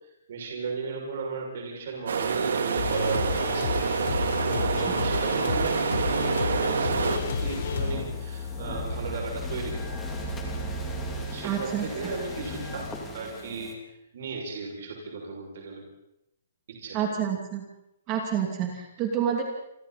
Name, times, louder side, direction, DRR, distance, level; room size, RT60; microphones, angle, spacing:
voice 1, 0.3-4.2 4.4-9.9 11.1-12.8 13.1-15.8 16.7-17.0, right 4 dB, 50° right, -1 dB, 6.5 m, -35 dB
sound 1, 2.1-7.2, right 5 dB, 80° right, 3.3 m, -27 dB
sound 2, 2.8-7.9, left 6 dB, 65° left, 4.1 m, -31 dB
sound 3, 6.9-13.7, left 1 dB, 10° left, 2.8 m, -35 dB
voice 2, 11.4-12.1 16.9-17.6 18.1-19.4, right 8 dB, 20° right, 1 dB, 2.7 m, -28 dB
29.0 x 24.0 x 4.3 m, 0.83 s
hypercardioid pair, 175°, 0 cm